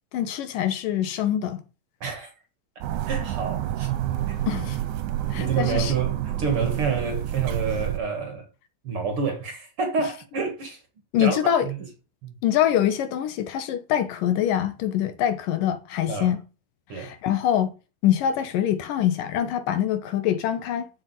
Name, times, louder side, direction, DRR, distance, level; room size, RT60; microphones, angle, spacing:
voice 1, 0.1-1.6 4.5-4.8 5.3-5.9 11.1-11.7 12.4-16.4 16.9-17.7 18.0-20.9, left 10 dB, 75° left, 2.7 m, -24 dB
voice 2, 2.0-2.3 3.1-3.9 4.3-4.4 5.4-8.5 8.8-10.8 11.2-11.8 12.2-12.3 16.1-16.3 16.9-17.1, right 5 dB, 50° right, 2.1 m, -28 dB
sound 1, 2.8-8.0, right 12 dB, 70° right, 2.3 m, -28 dB
7.5 x 7.3 x 8.4 m
omnidirectional pair, 4.0 m